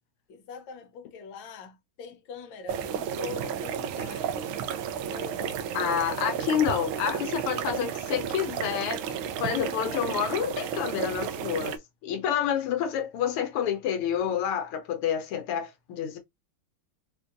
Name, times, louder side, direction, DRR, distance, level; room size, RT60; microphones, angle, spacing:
voice 1, 0.3-4.3 5.1-5.7, left 4 dB, 65° left, 1.5 m, -43 dB
sound 1, 2.7-11.8, right 8 dB, 80° right, 1.4 m, -32 dB
voice 2, 5.7-16.2, left 8 dB, 85° left, 1.6 m, -29 dB
4.3 x 2.6 x 2.5 m
omnidirectional pair, 2.4 m